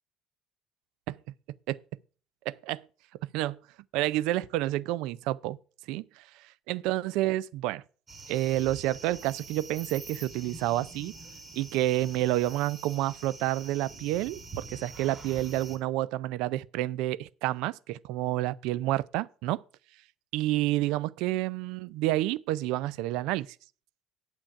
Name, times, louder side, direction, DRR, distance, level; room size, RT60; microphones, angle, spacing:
voice 1, 2.5-2.8 3.2-3.6 3.9-5.6 5.9-6.3 6.7-7.8 8.3-11.1 11.5-19.6 20.3-23.5, right 16 dB, 75° right, 0.4 m, -29 dB
sound 1, 8.1-15.8, right 3 dB, 35° right, 3.4 m, -45 dB
9.1 x 7.3 x 4.6 m
supercardioid pair, 80°, 0 cm